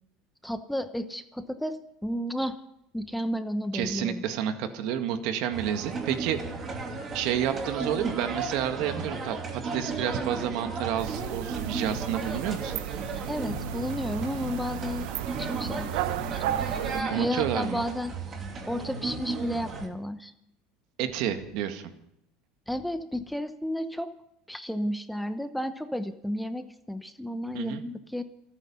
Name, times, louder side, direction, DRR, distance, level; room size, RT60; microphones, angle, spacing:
voice 1, 0.4-2.6 2.9-4.2 13.3-15.1 15.4-18.1 18.7-20.3 22.7-24.1 24.5-28.2, equal, ahead, 9 dB, 0.9 m, -32 dB
voice 2, 3.7-6.4 7.1-12.7 17.1-17.8 21.0-21.9 27.5-27.8, right 10 dB, 65° right, 7 dB, 1.9 m, -30 dB
sound 1, 5.5-19.9, right 4 dB, 30° right, 2.8 m, -35 dB
sound 2, 11.0-17.0, right 12 dB, 80° right, 0.8 m, -34 dB
27.5 x 9.5 x 5.6 m, 0.80 s
supercardioid pair, 130°, 0 cm